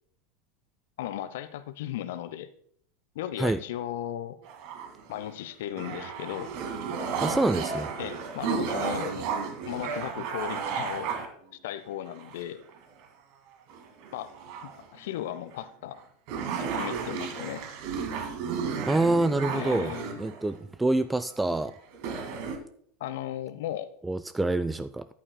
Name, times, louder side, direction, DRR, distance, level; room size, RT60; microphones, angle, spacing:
voice 1, 1.0-2.5 3.1-4.4 5.1-6.5 8.0-9.2 9.6-11.1 11.6-12.6 14.1-14.3 14.6-16.0 16.6-17.6 19.5-20.4 23.0-23.9, left 11 dB, 60° left, 13 dB, 0.7 m, -36 dB
sound 1, 4.5-5.3 5.8-11.3 12.1-12.7 13.0-13.1 13.7-14.8 15.5-15.6 16.0-16.1 16.3-20.6 21.5-21.6 21.9-22.6, right 6 dB, 55° right, 2.0 m, -33 dB
voice 2, 7.2-7.9 18.8-19.9 20.2-21.7 24.0-25.1, right 2 dB, 10° right, 12 dB, 0.4 m, -26 dB
13.5 x 11.0 x 2.2 m, 0.63 s
figure-of-eight pair, 80°, 0 cm